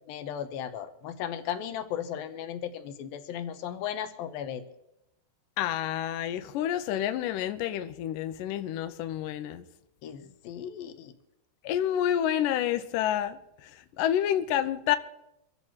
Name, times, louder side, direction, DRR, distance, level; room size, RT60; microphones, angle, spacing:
voice 1, 0.1-4.6 10.0-11.1, left 9 dB, 75° left, 2.4 m, -36 dB
voice 2, 5.6-9.6 11.6-15.0, left 11 dB, 90° left, 1.9 m, -29 dB
24.5 x 14.5 x 3.0 m
omnidirectional pair, 4.8 m